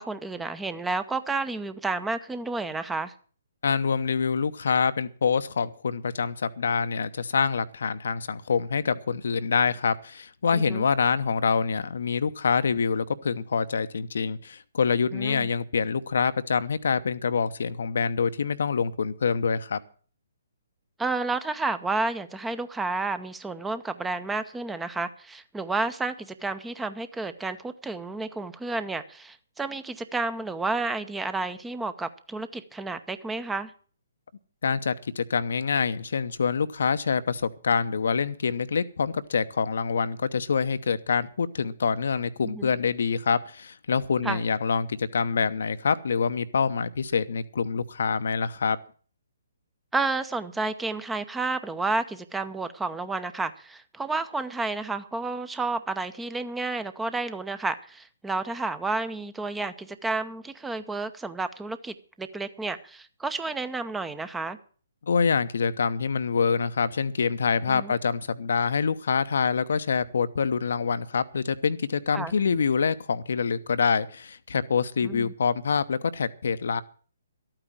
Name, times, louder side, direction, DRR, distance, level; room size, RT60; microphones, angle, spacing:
voice 1, 0.0-3.1 10.5-10.8 15.1-15.5 21.0-33.7 42.4-42.7 44.2-44.4 49.9-64.6 67.7-67.9 72.1-72.3 75.0-75.3, right 3 dB, 5° right, 12 dB, 0.8 m, -31 dB
voice 2, 3.6-19.8 34.6-48.8 65.0-76.8, left 5 dB, 60° left, 13 dB, 0.8 m, -26 dB
13.0 x 9.0 x 7.6 m, 0.42 s
figure-of-eight pair, 130°, 0 cm